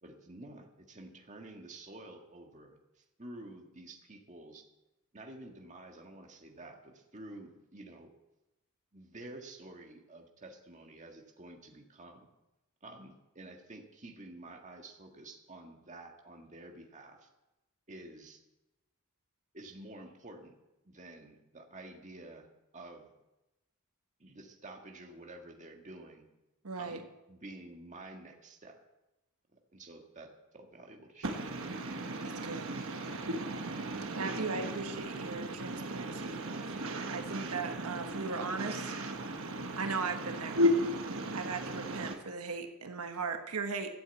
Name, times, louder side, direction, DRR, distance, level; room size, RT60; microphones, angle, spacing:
voice 1, 0.0-4.6 5.1-8.1 8.9-12.3 12.8-17.3 17.9-18.4 19.5-20.5 20.9-22.5 22.7-23.1 24.2-26.3 26.8-28.8 29.5-31.3, right 2 dB, 35° right, 2 dB, 1.7 m, -50 dB
voice 2, 26.6-27.0 32.4-32.7 34.2-36.4 37.1-38.9 39.8-40.6 41.3-43.9, right 4 dB, 85° right, 6 dB, 1.2 m, -38 dB
voice 3, 31.2-42.2, equal, 65° right, 4 dB, 1.2 m, -35 dB
13.0 x 7.8 x 8.1 m, 0.98 s
head